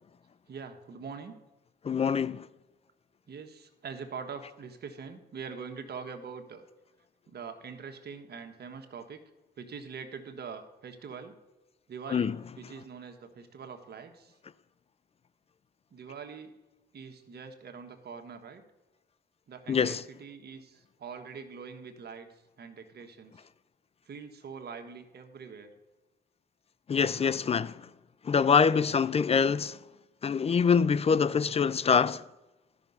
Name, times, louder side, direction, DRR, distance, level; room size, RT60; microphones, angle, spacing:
voice 1, 0.5-1.3 3.3-6.6 7.3-9.2 9.6-11.3 11.9-14.4 15.9-16.5 16.9-18.6 19.5-23.5 24.1-25.7, right 5 dB, 55° right, 1.3 m, -43 dB
voice 2, 1.8-2.5 12.1-12.4 19.7-20.0 26.9-27.7 28.2-29.8 30.2-32.2, left 6 dB, 30° left, 0.4 m, -25 dB
12.0 x 5.9 x 5.4 m
cardioid pair, 70°, 20 cm